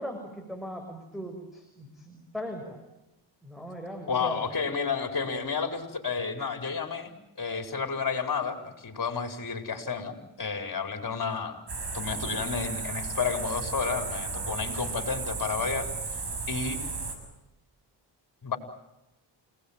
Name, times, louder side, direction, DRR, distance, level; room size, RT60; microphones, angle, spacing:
voice 1, 0.0-2.8 3.4-4.4, equal, ahead, 4 dB, 6.3 m, -39 dB
voice 2, 4.1-7.1 7.4-11.6 11.9-15.9 16.1-16.8 18.4-18.6, left 5 dB, 40° left, 6 dB, 5.0 m, -31 dB
sound 1, 11.7-17.1, right 4 dB, 55° right, 7.5 m, -34 dB
29.0 x 19.0 x 9.1 m, 0.93 s
cardioid pair, 70°, 49 cm